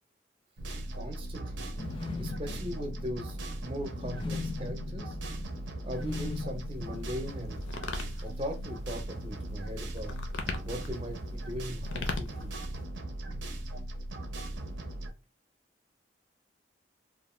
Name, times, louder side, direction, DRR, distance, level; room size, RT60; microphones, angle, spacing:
sound 1, 0.6-15.1, right 1 dB, 80° right, 0.6 m, -38 dB
voice 1, 0.9-1.7 2.2-5.2 5.8-7.6 8.2-10.1 10.6-12.5, equal, 30° right, 4 dB, 0.5 m, -39 dB
sound 2, 1.6-7.7, left 4 dB, 25° left, 0.3 m, -41 dB
sound 3, 5.9-12.8, left 3 dB, 90° left, 0.5 m, -40 dB
2.5 x 2.2 x 3.1 m, 0.28 s
head